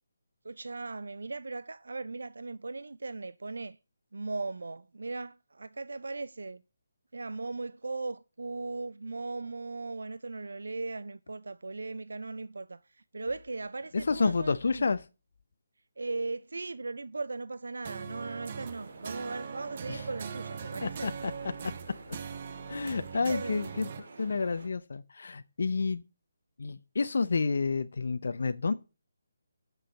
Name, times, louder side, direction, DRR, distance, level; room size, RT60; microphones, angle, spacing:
voice 1, 0.4-3.8 4.1-6.6 7.1-14.9 16.0-21.2 23.0-23.7, right 3 dB, 75° right, 0.5 m, -38 dB
voice 2, 14.0-15.1 19.9-20.0 20.8-21.3 22.7-26.0 26.6-28.7, left 4 dB, 65° left, 0.6 m, -30 dB
sound 1, 17.8-24.0, right 7 dB, 40° right, 0.8 m, -41 dB
sound 2, 18.2-24.7, right 3 dB, 60° right, 1.8 m, -50 dB
7.5 x 6.3 x 6.7 m
figure-of-eight pair, 150°, 0 cm